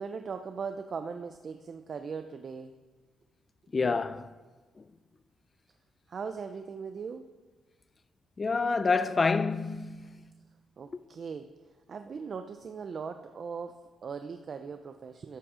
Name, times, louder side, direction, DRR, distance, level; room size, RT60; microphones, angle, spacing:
voice 1, 0.0-2.8 6.1-7.3 10.8-11.5 11.9-15.4, right 5 dB, 45° right, 0.5 m, -39 dB
voice 2, 3.7-4.3 4.8-4.9 8.4-10.2, left 4 dB, 30° left, 0.4 m, -28 dB
13.0 x 6.1 x 4.9 m
cardioid pair, 120°, 0 cm